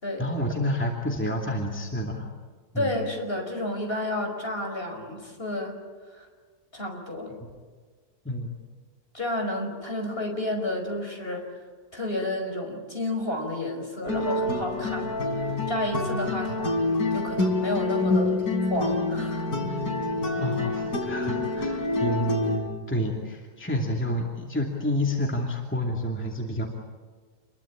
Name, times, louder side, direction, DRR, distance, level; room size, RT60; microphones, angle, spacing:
voice 1, 0.2-2.3 2.7-2.9 8.2-8.5 16.4-16.5 20.4-26.7, equal, 5° left, 0 dB, 2.6 m, -29 dB
voice 2, 2.8-5.7 6.1-6.3 6.7-7.3 9.1-11.5 11.9-15.1 15.4-16.7 17.1-18.4 18.7-19.8, left 1 dB, 35° left, 3 dB, 5.5 m, -31 dB
sound 1, 14.0-22.6, left 2 dB, 75° left, 4.1 m, -27 dB
28.5 x 22.0 x 8.8 m, 1.5 s
omnidirectional pair, 1.7 m